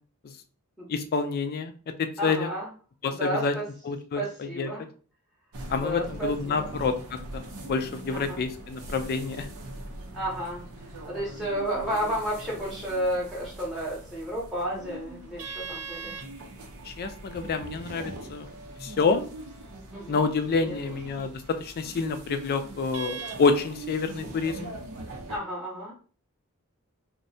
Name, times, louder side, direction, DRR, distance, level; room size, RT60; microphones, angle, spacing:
voice 1, 0.9-1.7 2.0-2.5 3.0-3.5 3.8-4.7 5.7-9.5 16.8-18.5 18.8-19.2 20.1-24.7, left 4 dB, 45° left, 7 dB, 0.3 m, -28 dB
voice 2, 2.2-2.7 3.1-3.6 4.1-4.8 5.7-6.7 8.1-8.4 10.1-10.6 11.0-16.2 19.9-20.2 20.6-20.9 25.3-25.9, right 1 dB, ahead, -6 dB, 0.7 m, -32 dB
sound 1, 5.5-25.4, right 2 dB, 75° right, 0.6 m, -41 dB
2.6 x 2.1 x 2.6 m, 0.39 s
head